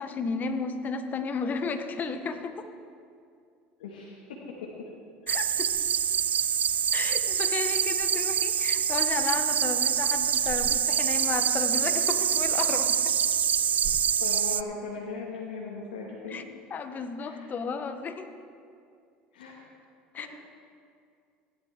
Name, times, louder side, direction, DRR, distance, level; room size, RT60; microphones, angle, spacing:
voice 1, 0.0-2.7 5.3-5.7 6.9-13.1 16.3-16.4 16.7-18.3 20.1-20.3, left 5 dB, 35° left, 8 dB, 1.0 m, -33 dB
voice 2, 3.8-4.2 7.3-7.6 13.6-13.7 14.2-16.5 17.2-17.5 19.3-19.6 20.2-20.3, left 4 dB, 85° left, -4 dB, 1.9 m, -39 dB
sound 1, 5.3-14.6, right 8 dB, 35° right, 0.4 m, -25 dB
16.0 x 11.0 x 3.7 m, 2.3 s
hypercardioid pair, 85°, 5 cm